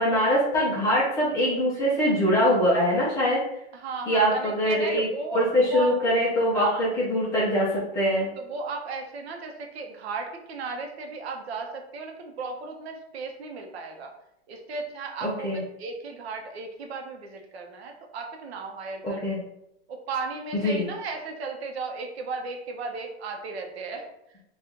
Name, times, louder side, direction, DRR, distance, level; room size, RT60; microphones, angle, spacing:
voice 1, 0.0-3.4 4.1-5.1 5.3-8.3 15.2-15.6 19.0-19.4 20.5-20.9, equal, 10° left, -6 dB, 0.4 m, -23 dB
voice 2, 3.7-5.9 6.5-6.9 8.4-14.1 14.5-19.4 19.9-24.0 24.3-24.4, right 4 dB, 70° right, 3 dB, 0.8 m, -35 dB
2.8 x 2.4 x 3.7 m, 0.81 s
hypercardioid pair, 150°, 33 cm